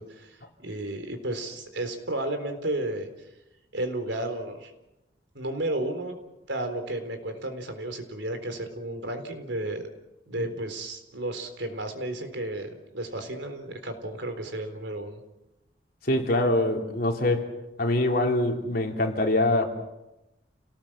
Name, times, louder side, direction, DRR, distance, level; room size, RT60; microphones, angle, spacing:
voice 1, 0.0-3.1 3.7-4.7 5.3-6.1 6.5-9.8 10.3-15.2, right 1 dB, 75° right, 7 dB, 3.9 m, -33 dB
voice 2, 16.0-17.5 17.8-19.7, left 1 dB, 50° left, 2 dB, 3.6 m, -24 dB
29.0 x 19.0 x 7.5 m, 0.95 s
head